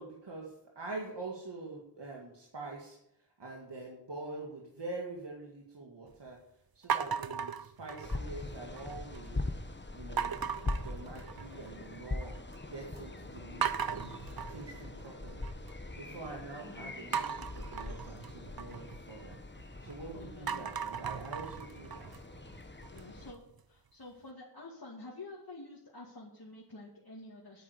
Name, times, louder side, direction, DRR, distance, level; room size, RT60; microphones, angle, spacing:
voice 1, 0.0-6.4 6.7-10.4 10.8-12.3 12.7-14.1 14.5-15.5 15.9-19.4 19.8-22.1, right 2 dB, 80° right, -1 dB, 2.1 m, -45 dB
sound 1, 6.9-8.4 8.8-9.3 10.2-11.7 12.0-12.6 13.0-13.1 13.6-15.7 17.1-19.9 20.3-23.2, right 7 dB, 60° right, 0.7 m, -37 dB
sound 2, 8.0-23.3, left 2 dB, 25° left, 1.2 m, -42 dB
voice 2, 16.5-17.0 20.1-20.7 22.9-23.4 23.7-27.6, left 2 dB, 60° left, -4 dB, 2.3 m, -49 dB
9.3 x 9.3 x 8.2 m, 0.81 s
wide cardioid pair, 40°, 42 cm